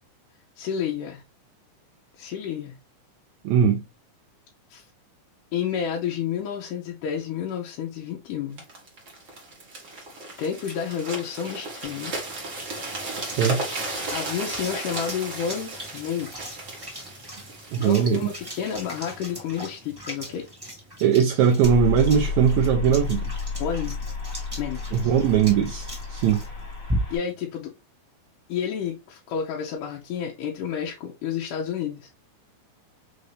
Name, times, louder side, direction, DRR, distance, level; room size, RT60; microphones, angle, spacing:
voice 1, 0.6-1.2 2.2-2.8 4.7-4.9 5.5-8.6 10.4-12.2 14.1-16.6 17.8-20.4 23.6-24.1 24.6-25.1 27.1-27.7 28.5-32.1, left 8 dB, 80° left, 2.3 m, -30 dB
voice 2, 3.4-3.8 13.2-13.6 17.7-18.2 21.0-23.3 24.9-26.4, right 8 dB, 75° right, 1.8 m, -20 dB
sound 1, 8.6-20.4 21.0-21.2, right 2 dB, 50° right, 0.9 m, -35 dB
sound 2, 11.8-27.4, equal, 15° right, 1.0 m, -39 dB
sound 3, 21.6-27.2, left 5 dB, 40° left, 1.2 m, -31 dB
5.6 x 2.6 x 3.2 m
omnidirectional pair, 3.7 m